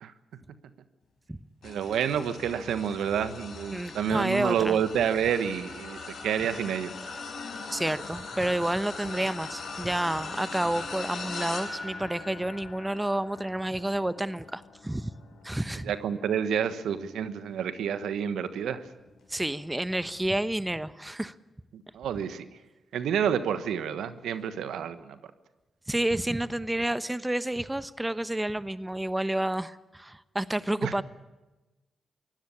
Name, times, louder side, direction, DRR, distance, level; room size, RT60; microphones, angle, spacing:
sound 1, 1.6-17.1 17.6-17.9 19.2-19.3, left 4 dB, 65° left, 4.7 m, -41 dB
voice 1, 1.6-6.9 9.0-9.1 15.8-18.8 21.7-22.4 22.9-25.2 30.8-31.0, right 8 dB, 80° right, 12 dB, 1.3 m, -29 dB
voice 2, 3.7-4.8 7.7-15.1 15.4-15.9 19.3-21.3 25.9-31.0, right 1 dB, 15° right, 15 dB, 1.0 m, -30 dB
23.5 x 17.0 x 8.5 m, 1.1 s
hypercardioid pair, 40°, 0 cm